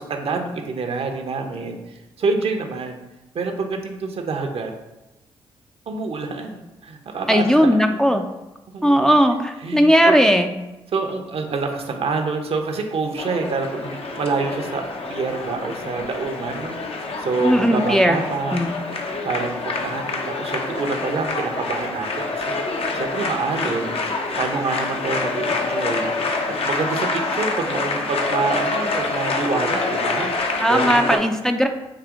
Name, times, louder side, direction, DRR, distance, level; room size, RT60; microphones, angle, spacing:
voice 1, 0.0-3.0 3.3-4.7 5.9-8.2 8.7-9.1 9.6-10.2 10.9-18.6 19.2-22.6 22.9-26.1 26.5-31.0, right 4 dB, 55° right, 4 dB, 0.7 m, -27 dB
voice 2, 7.3-8.2 8.8-10.5 17.4-18.2 18.5-18.7 30.6-31.7, equal, 5° left, 5 dB, 0.4 m, -17 dB
sound 1, 13.2-31.2, left 3 dB, 55° left, 0.7 m, -26 dB
5.0 x 2.7 x 3.6 m, 1.0 s
hypercardioid pair, 45°, 12 cm